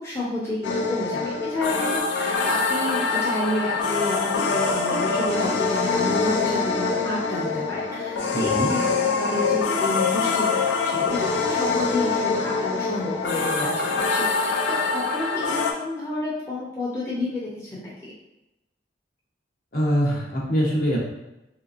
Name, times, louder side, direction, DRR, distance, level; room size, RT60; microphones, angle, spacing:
voice 1, 0.0-18.1, left 1 dB, 15° left, -7 dB, 0.6 m, -30 dB
sound 1, 0.6-15.7, left 4 dB, 70° left, 0.4 m, -24 dB
voice 2, 8.3-8.7 19.7-21.0, equal, 50° left, -4 dB, 0.8 m, -23 dB
3.3 x 2.9 x 2.5 m, 0.95 s
head